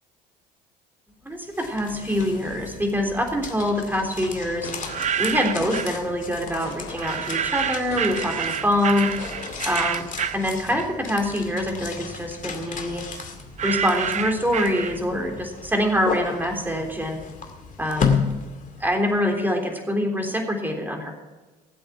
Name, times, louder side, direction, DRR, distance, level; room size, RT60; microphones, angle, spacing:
voice 1, 1.2-4.7 5.2-9.1 9.7-10.1 10.3-13.0 13.6-17.2 17.8-18.1 18.8-21.1, left 1 dB, 10° right, 2 dB, 3.5 m, -25 dB
sound 1, 1.3-19.3, left 5 dB, 40° left, 2.3 m, -33 dB
sound 2, 4.6-9.7, left 4 dB, 75° left, 2.5 m, -42 dB
sound 3, 4.7-6.0 7.0-11.2 11.6-15.3, right 8 dB, 35° right, 0.6 m, -29 dB
19.0 x 7.8 x 5.8 m, 1.2 s
hypercardioid pair, 60°, 21 cm